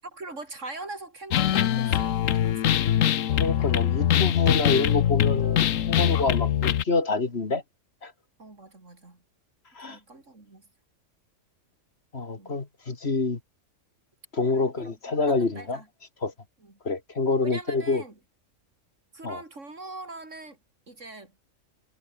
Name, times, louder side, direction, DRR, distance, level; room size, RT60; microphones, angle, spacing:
voice 1, 0.0-2.8 8.4-9.2 9.9-10.6 12.4-12.6 14.5-14.9 15.3-15.9 16.6-16.7 17.4-18.1 19.1-20.6 20.9-21.3, right 2 dB, 70° right, 4.5 m, -42 dB
sound 1, 1.3-6.8, left 10 dB, 80° left, 1.2 m, -23 dB
voice 2, 3.4-7.6 8.0-8.1 9.8-10.0 12.1-13.4 14.3-15.8 16.2-16.3 16.8-18.0 19.2-19.4, left 3 dB, 50° left, 2.5 m, -27 dB
omnidirectional pair, 1.3 m